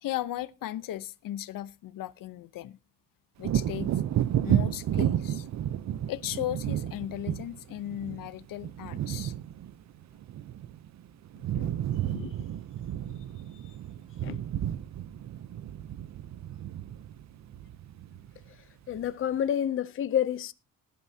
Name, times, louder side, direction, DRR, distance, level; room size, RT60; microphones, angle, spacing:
voice 1, 0.0-2.8 3.4-3.9 4.4-5.5 6.1-9.3, left 13 dB, 90° left, 0.8 m, -36 dB
Wind / Thunder, 3.4-11.0 11.3-18.5 18.9-19.1, right 11 dB, 55° right, 0.7 m, -32 dB
voice 2, 18.9-20.5, left 9 dB, 40° left, 0.6 m, -29 dB
19.0 x 11.0 x 2.8 m
wide cardioid pair, 160°, 32 cm